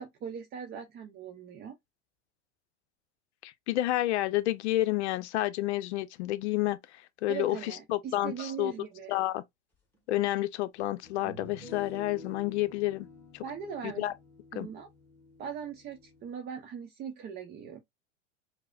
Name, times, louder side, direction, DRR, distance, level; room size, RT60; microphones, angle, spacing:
voice 1, 0.0-1.8 7.3-9.2 13.4-14.1 14.5-14.9 15.4-17.8, right 7 dB, 30° right, 0.6 m, -40 dB
voice 2, 3.4-6.8 7.2-8.7 9.1-9.4 10.1-13.1 13.3-13.4 13.8-14.1 14.6-14.7, left 16 dB, 75° left, 0.6 m, -30 dB
sound 1, 9.9-10.0 11.0-16.3, left 1 dB, 5° left, 1.6 m, -50 dB
4.7 x 2.0 x 2.3 m
hypercardioid pair, 105°, 34 cm